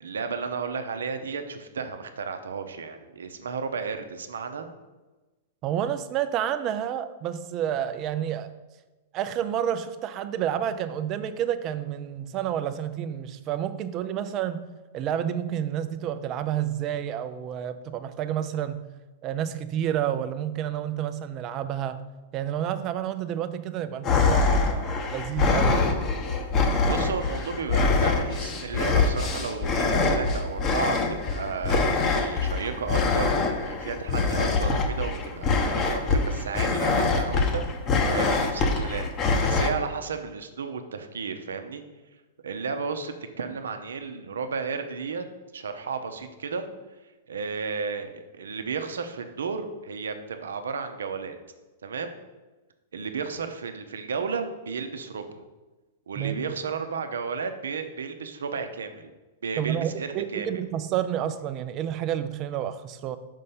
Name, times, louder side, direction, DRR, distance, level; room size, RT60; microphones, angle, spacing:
voice 1, 0.0-4.7 26.8-37.6 37.9-39.1 39.4-41.8 42.4-45.2 45.5-46.7 47.3-51.4 51.8-52.1 52.9-55.3 56.1-59.1 59.4-60.5, right 5 dB, 75° right, 7 dB, 0.8 m, -33 dB
voice 2, 5.6-8.5 9.1-14.6 14.9-18.8 19.2-22.0 22.3-25.9 56.2-56.4 59.6-63.2, right 10 dB, 40° right, 11 dB, 0.5 m, -29 dB
sound 1, 24.0-39.7, left 3 dB, 35° left, 1.0 m, -24 dB
5.5 x 5.3 x 5.5 m, 1.2 s
figure-of-eight pair, 100°, 0 cm